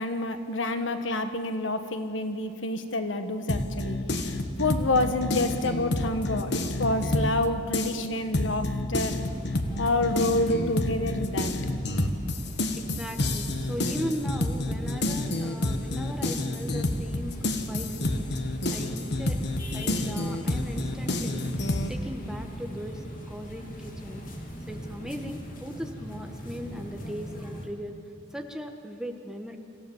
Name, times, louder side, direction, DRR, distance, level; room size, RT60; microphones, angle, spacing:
voice 1, 0.0-9.1 9.8-11.5, left 2 dB, 85° left, 8 dB, 1.5 m, -28 dB
sound 1, 3.5-7.4 7.7-21.9, left 1 dB, 60° left, 1.4 m, -29 dB
sound 2, 9.1-27.7, equal, 45° left, 2.7 m, -41 dB
voice 2, 12.7-18.3 18.7-19.4 19.7-21.5 21.9-24.3 24.7-28.0 28.3-29.6, equal, 5° right, 4 dB, 1.3 m, -38 dB
25.5 x 15.0 x 7.3 m, 2.5 s
head